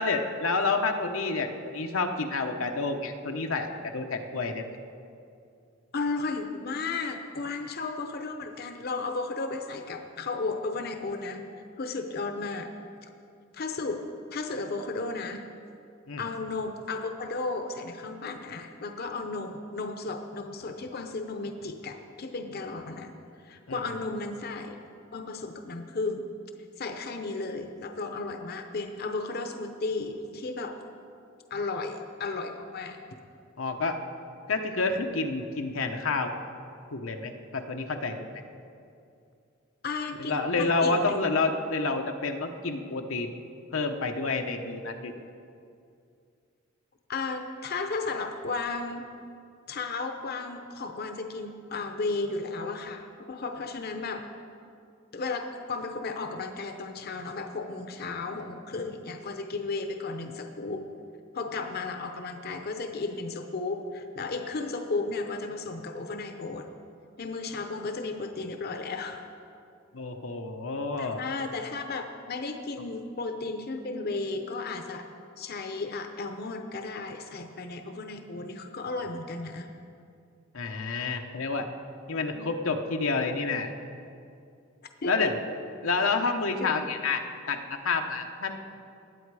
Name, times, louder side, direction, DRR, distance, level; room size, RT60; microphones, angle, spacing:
voice 1, 0.0-4.7 16.1-16.2 23.7-23.8 33.6-34.0 34.5-36.3 36.9-38.3 40.2-43.3 43.7-45.1 69.9-71.2 80.5-81.7 82.1-83.7 85.1-85.4 85.8-88.6, left 3 dB, 90° left, 4 dB, 1.0 m, -29 dB
voice 2, 5.9-11.5 11.8-12.7 13.0-13.1 13.5-15.5 16.2-23.2 23.4-24.8 25.1-26.3 26.8-30.8 31.5-33.0 39.8-41.2 47.1-49.2 49.7-54.3 55.1-60.9 61.3-66.7 67.2-69.2 71.0-75.1 75.4-79.7 82.3-82.5 85.0-85.3 86.6-86.7, left 3 dB, 50° left, 6 dB, 0.7 m, -34 dB
19.0 x 8.6 x 4.8 m, 2.5 s
head